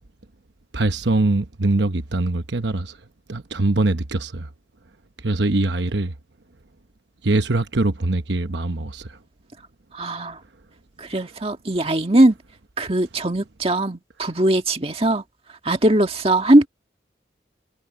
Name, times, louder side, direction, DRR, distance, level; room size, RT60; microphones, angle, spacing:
voice 1, 0.7-3.0 3.3-4.5 5.2-6.1 7.2-9.2, right 2 dB, 80° right, 1.0 m, -22 dB
voice 2, 9.9-10.4 11.0-12.4 12.8-15.2 15.7-16.7, right 1 dB, 35° right, 1.9 m, -19 dB
head